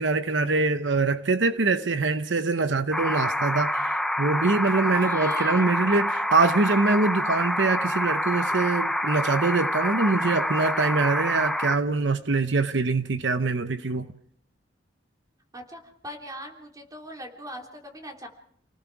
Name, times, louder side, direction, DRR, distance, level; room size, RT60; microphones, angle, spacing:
voice 1, 0.0-14.1, right 3 dB, 75° right, 0.9 m, -24 dB
sound 1, 2.9-11.8, left 1 dB, ahead, 0.7 m, -27 dB
voice 2, 4.9-5.7 15.5-18.3, equal, 20° right, 3.2 m, -39 dB
29.5 x 19.0 x 4.7 m
head